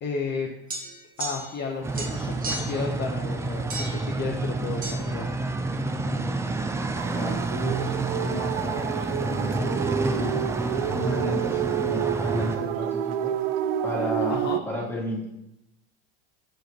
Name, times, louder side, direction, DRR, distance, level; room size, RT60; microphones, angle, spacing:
voice 1, 0.0-0.5 1.2-5.3 11.0-11.1 14.3-14.6, left 4 dB, 35° left, 0 dB, 0.8 m, -32 dB
sound 1, 0.7-1.7 1.9-2.8 3.7-4.1 4.8-5.0, right 2 dB, 30° right, 1.5 m, -34 dB
sound 2, 1.8-12.6, right 2 dB, 10° right, 0.4 m, -29 dB
voice 2, 5.9-6.3 7.0-13.3 13.8-15.3, left 1 dB, 5° left, -5 dB, 2.1 m, -33 dB
sound 3, 7.0-14.6, right 11 dB, 75° right, 0.5 m, -29 dB
6.5 x 4.7 x 3.2 m, 0.87 s
hypercardioid pair, 95°, 31 cm